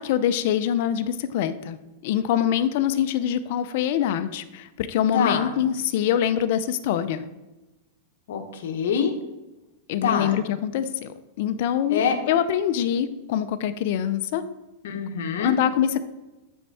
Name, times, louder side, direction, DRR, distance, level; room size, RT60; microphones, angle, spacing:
voice 1, 0.0-1.8 2.0-7.2 9.9-11.1 11.4-14.4 15.4-16.0, left 10 dB, 60° left, 11 dB, 0.6 m, -24 dB
voice 2, 5.1-5.5 8.3-9.1 10.0-10.3 11.9-12.2 14.8-15.6, left 6 dB, 75° left, 6 dB, 1.1 m, -25 dB
8.8 x 4.5 x 4.8 m, 1.0 s
supercardioid pair, 145°, 0 cm